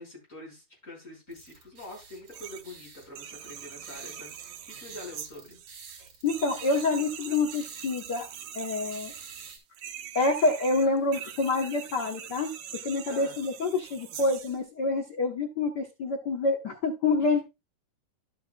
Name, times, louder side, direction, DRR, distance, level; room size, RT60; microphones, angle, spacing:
voice 1, 0.0-5.6 13.1-13.4 17.2-17.4, left 1 dB, 20° left, -2 dB, 5.8 m, -45 dB
sound 1, 1.3-9.6, right 4 dB, 45° right, 4.3 m, -52 dB
sound 2, 2.3-2.7 3.0-14.6, right 9 dB, 75° right, 1.4 m, -43 dB
voice 2, 6.2-8.3 8.5-9.1 10.1-17.4, left 3 dB, 85° left, 2 dB, 0.9 m, -27 dB
12.0 x 8.6 x 2.3 m, 0.24 s
omnidirectional pair, 3.7 m